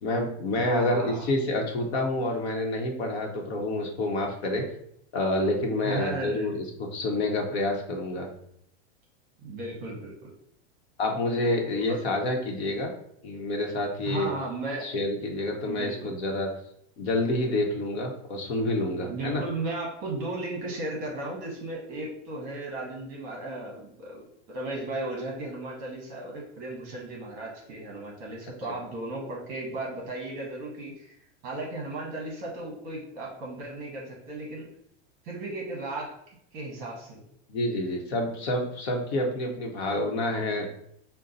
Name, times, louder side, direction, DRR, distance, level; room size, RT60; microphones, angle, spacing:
voice 1, 0.0-4.7 5.1-8.3 11.0-12.9 13.2-14.3 14.8-16.5 17.0-19.4 37.5-40.7, left 1 dB, 65° left, 2 dB, 1.1 m, -28 dB
voice 2, 0.6-1.3 5.8-6.6 9.4-10.3 11.9-12.0 14.0-14.9 15.7-16.1 19.0-24.2 24.5-31.1 31.4-34.7 35.2-36.2 36.5-37.2, right 2 dB, 25° right, -2 dB, 0.9 m, -35 dB
5.4 x 2.2 x 3.9 m, 0.72 s
supercardioid pair, 180°, 34 cm